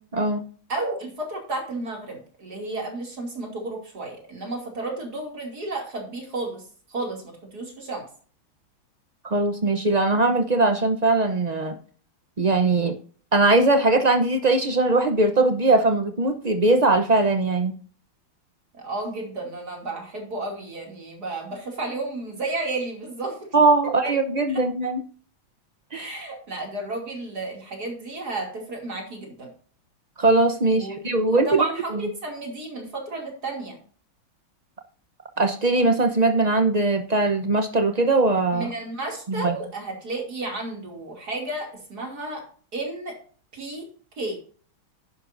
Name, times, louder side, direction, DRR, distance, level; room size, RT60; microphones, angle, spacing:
voice 1, 0.1-0.4 9.2-11.7 12.4-13.0 13.3-17.8 23.5-25.0 25.9-26.1 30.2-31.7 31.9-32.0 35.4-38.7 39.3-39.6, right 2 dB, 80° right, 6 dB, 0.3 m, -20 dB
voice 2, 0.7-6.6 6.9-7.2 7.5-8.0 18.8-23.5 24.5-24.6 25.9-29.5 30.7-33.8 38.5-42.4 42.7-43.2 43.5-43.9 44.2-44.4, right 2 dB, 50° right, 0 dB, 3.2 m, -32 dB
11.0 x 9.7 x 2.6 m, 0.44 s
omnidirectional pair, 2.2 m